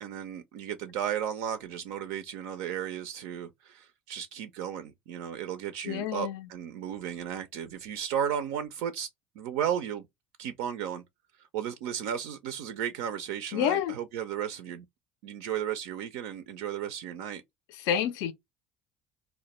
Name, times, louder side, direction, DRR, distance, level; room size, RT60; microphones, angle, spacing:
voice 1, 0.0-9.1 9.4-10.1 10.4-11.0 11.4-14.9 15.2-17.4, right 9 dB, 70° right, 0.3 m, -34 dB
voice 2, 5.8-6.4 13.5-13.9 17.8-18.3, left 9 dB, 65° left, 0.4 m, -28 dB
2.1 x 2.1 x 2.8 m
hypercardioid pair, 70°, 5 cm